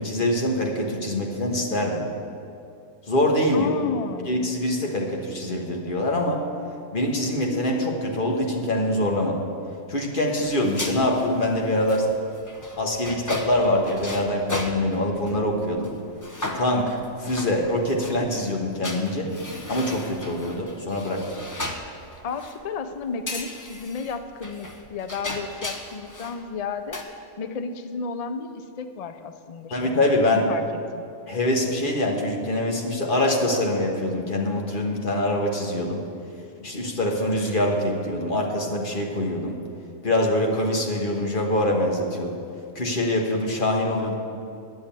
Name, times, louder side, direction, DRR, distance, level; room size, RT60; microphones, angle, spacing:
voice 1, 0.0-2.1 3.1-3.7 4.3-6.4 6.9-9.4 9.9-12.1 12.8-15.9 16.4-19.3 19.7-21.2 29.7-30.5 31.3-36.1 36.6-39.6 40.0-42.4 42.7-44.1, left 1 dB, 40° left, 1 dB, 1.4 m, -24 dB
voice 2, 3.5-4.3 22.2-27.0 27.4-30.0 30.3-30.6 30.9-31.0, left 5 dB, 75° left, 9 dB, 0.3 m, -32 dB
sound 1, 10.5-15.4 15.8-15.9 16.2-18.2 18.8-22.6 23.3-26.4 26.7-27.0, left 1 dB, 20° left, 0.6 m, -36 dB
10.5 x 6.3 x 8.8 m, 2.6 s
omnidirectional pair, 1.4 m